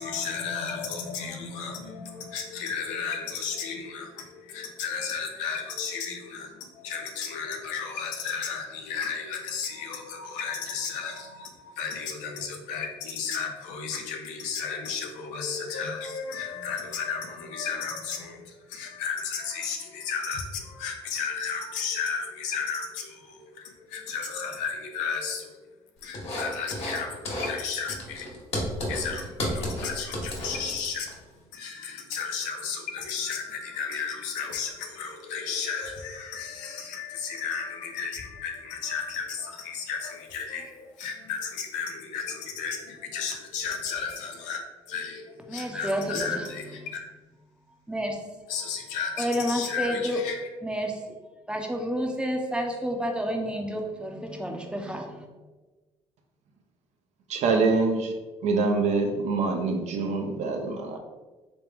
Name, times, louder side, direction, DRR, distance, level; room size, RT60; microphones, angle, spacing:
voice 1, 0.0-25.6 26.0-28.3 28.9-31.2 31.5-44.6 44.9-47.0 48.5-50.4, left 6 dB, 90° left, 2 dB, 0.7 m, -33 dB
sound 1, 26.1-27.0 27.3-27.6 27.9-31.1, left 1 dB, 55° left, 1.4 m, -32 dB
voice 2, 45.5-46.6 47.9-48.2 49.2-50.2 50.6-51.2 51.5-55.2, equal, 10° right, 2 dB, 0.7 m, -30 dB
voice 3, 57.3-58.2 58.4-61.0, right 4 dB, 65° right, 3 dB, 0.7 m, -25 dB
3.4 x 3.0 x 3.5 m, 1.2 s
supercardioid pair, 85°, 12 cm